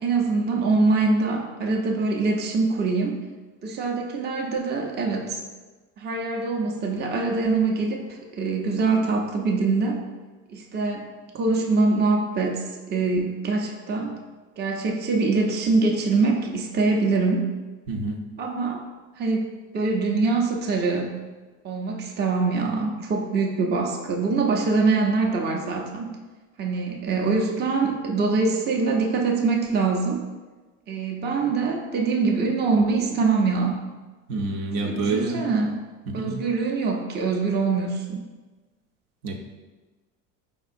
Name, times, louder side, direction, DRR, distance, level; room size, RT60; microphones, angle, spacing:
voice 1, 0.0-3.2 3.6-5.4 6.0-10.0 10.5-11.1 11.3-14.2 14.6-17.5 18.4-18.8 19.2-19.5 19.7-21.1 21.6-26.2 26.6-30.2 30.9-33.8 34.8-35.8 36.1-38.3, right 3 dB, 30° right, 1 dB, 0.6 m, -24 dB
voice 2, 17.9-18.2 34.3-35.5 36.1-36.4 39.2-39.4, right 3 dB, 70° right, 2 dB, 0.8 m, -27 dB
4.9 x 3.5 x 2.6 m, 1.3 s
supercardioid pair, 100°, 37 cm